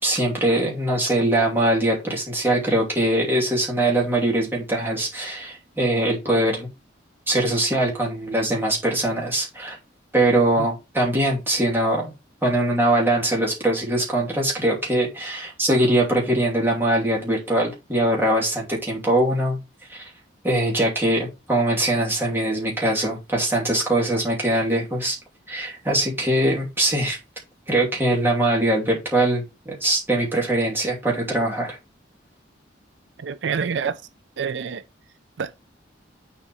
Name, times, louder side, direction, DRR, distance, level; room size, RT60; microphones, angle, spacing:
voice 1, 0.0-6.7 7.3-9.8 10.1-12.1 12.4-19.6 19.9-20.1 20.4-25.2 25.5-27.2 27.7-31.8, right 1 dB, 10° right, 2.7 m, -22 dB
voice 2, 33.2-33.9 34.4-34.8 35.4-35.7, right 6 dB, 70° right, 0.4 m, -27 dB
7.1 x 4.3 x 4.2 m
head